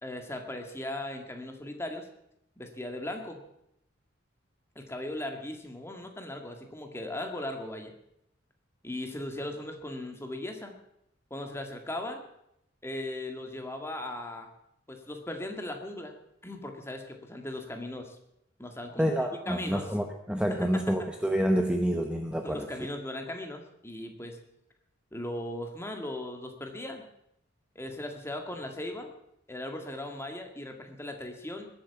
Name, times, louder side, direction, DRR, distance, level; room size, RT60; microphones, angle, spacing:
voice 1, 0.0-2.1 2.6-3.4 4.8-7.9 8.8-10.8 11.3-12.2 12.8-14.5 14.9-16.2 16.4-18.2 18.6-19.9 20.5-20.7 22.4-24.4 25.1-27.0 27.8-29.1 29.5-31.7, left 1 dB, 15° left, 3 dB, 2.0 m, -38 dB
voice 2, 19.0-22.7, equal, 5° right, 4 dB, 0.9 m, -28 dB
20.5 x 8.5 x 6.9 m, 0.77 s
head